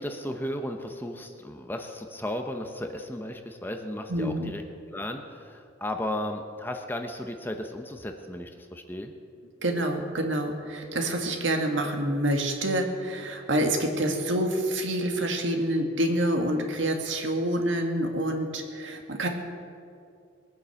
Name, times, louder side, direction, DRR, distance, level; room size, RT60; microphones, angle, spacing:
voice 1, 0.0-4.6 4.9-9.1, left 1 dB, 10° left, 5 dB, 0.8 m, -35 dB
voice 2, 4.1-4.5 9.6-19.3, right 1 dB, 70° right, 3 dB, 1.9 m, -27 dB
20.5 x 9.4 x 7.0 m, 2.4 s
head